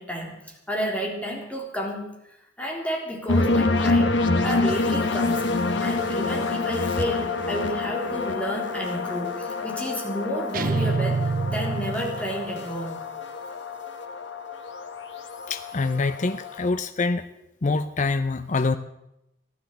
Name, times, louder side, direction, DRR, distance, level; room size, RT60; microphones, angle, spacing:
voice 1, 0.0-2.2 2.6-4.2 4.4-5.4 5.8-13.0, equal, 5° left, 0 dB, 3.6 m, -31 dB
sound 1, 3.3-16.7, left 3 dB, 75° left, 1.4 m, -27 dB
sound 2, 10.5-12.6, right 4 dB, 50° right, 0.5 m, -26 dB
voice 2, 15.5-17.2 17.6-18.8, left 3 dB, 40° left, 10 dB, 0.6 m, -25 dB
15.0 x 12.0 x 8.0 m, 0.85 s
head